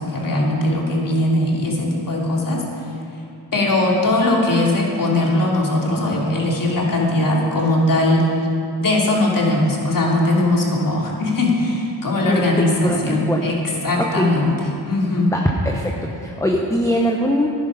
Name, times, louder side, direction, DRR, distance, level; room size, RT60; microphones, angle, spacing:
voice 1, 0.0-2.6 3.5-8.3 8.8-13.6 13.8-14.5 14.9-15.3, left 1 dB, 50° left, -2 dB, 2.8 m, -19 dB
voice 2, 12.2-13.4 13.9-14.4 15.3-15.9 16.2-17.5, equal, 5° left, 0 dB, 1.1 m, -21 dB
11.0 x 10.5 x 5.4 m, 2.7 s
cardioid pair, 60°, 43 cm